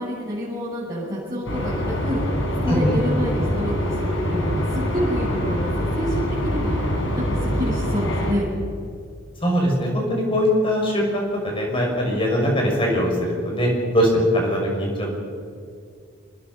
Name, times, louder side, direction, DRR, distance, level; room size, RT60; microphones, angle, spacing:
voice 1, 0.0-2.2 2.6-6.8 7.3-8.4, equal, 20° right, -11 dB, 7.6 m, -28 dB
sound 1, 1.5-8.3, equal, 60° left, 5.1 m, -24 dB
voice 2, 9.4-15.1, equal, 25° left, -1 dB, 6.1 m, -21 dB
26.5 x 20.0 x 5.6 m, 2.2 s
head